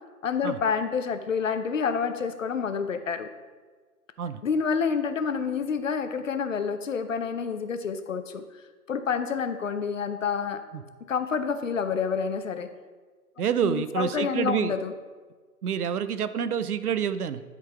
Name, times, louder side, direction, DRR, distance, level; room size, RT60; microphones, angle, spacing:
voice 1, 0.2-3.3 4.4-8.4 8.9-10.6 11.1-12.7 13.6-14.9, left 6 dB, 55° left, 9 dB, 0.7 m, -28 dB
voice 2, 13.4-14.8 15.6-17.4, right 8 dB, 70° right, 13 dB, 0.6 m, -28 dB
10.5 x 3.9 x 4.7 m, 1.4 s
hypercardioid pair, 165°, 47 cm